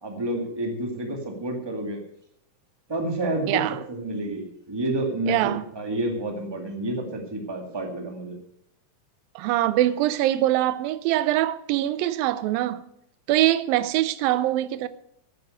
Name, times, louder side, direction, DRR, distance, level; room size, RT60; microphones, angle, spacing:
voice 1, 0.0-2.0 2.9-3.6 3.9-8.4, right 1 dB, 10° right, 1.2 m, -29 dB
voice 2, 3.5-3.8 5.3-5.6 9.4-12.8 13.3-14.9, right 14 dB, 80° right, 2.4 m, -23 dB
10.5 x 9.5 x 7.9 m
omnidirectional pair, 4.2 m